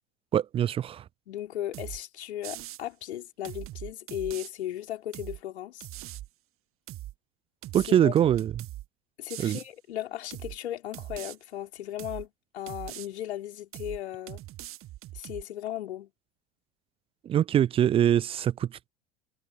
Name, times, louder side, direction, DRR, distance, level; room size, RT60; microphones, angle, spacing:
voice 1, 0.3-1.0 7.7-8.6 9.4-9.6 17.2-18.9, right 10 dB, 15° right, 0.3 m, -24 dB
voice 2, 1.3-5.9 7.9-8.1 9.2-14.4 15.1-16.1, left 12 dB, 70° left, 4.7 m, -36 dB
sound 1, 1.7-2.0 2.4-2.8 3.4-4.5 5.1-5.4 5.8-6.3 6.9-7.1 7.6-8.9 9.3-9.7 10.3-10.6 10.9-11.4 12.0-12.3 12.7-13.1 13.7-14.0 14.3-15.4, right 15 dB, 40° right, 1.7 m, -41 dB
figure-of-eight pair, 75°, 34 cm